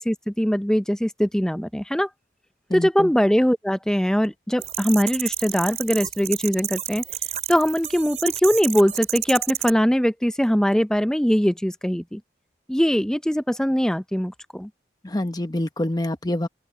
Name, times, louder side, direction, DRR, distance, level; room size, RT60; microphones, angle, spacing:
voice 1, 0.0-2.1 2.7-7.0 7.5-12.2 12.7-14.7, equal, 5° left, 0.5 m, -21 dB
voice 2, 2.7-3.1 15.0-16.5, left 1 dB, 20° left, 0.9 m, -26 dB
sound 1, 4.6-9.7, right 11 dB, 40° right, 4.6 m, -30 dB
open air
head